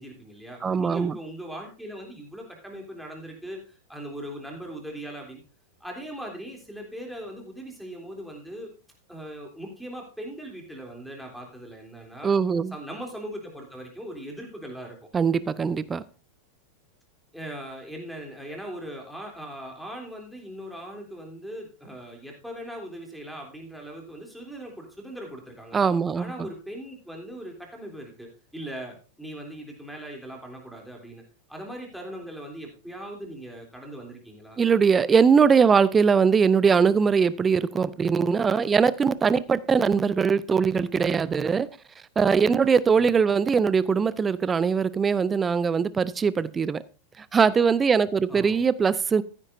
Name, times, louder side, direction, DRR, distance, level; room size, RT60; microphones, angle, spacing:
voice 1, 0.0-5.4 5.8-8.7 9.1-12.3 12.7-15.1 17.3-25.8 26.1-31.2 31.5-34.6 43.0-43.1 48.3-48.6, right 1 dB, ahead, 0 dB, 3.3 m, -39 dB
voice 2, 0.6-1.1 12.2-12.7 15.1-16.0 25.7-26.3 34.6-41.7 42.2-46.8 47.2-49.2, right 6 dB, 20° right, 18 dB, 0.5 m, -21 dB
14.5 x 9.8 x 2.7 m, 0.34 s
figure-of-eight pair, 90°, 0 cm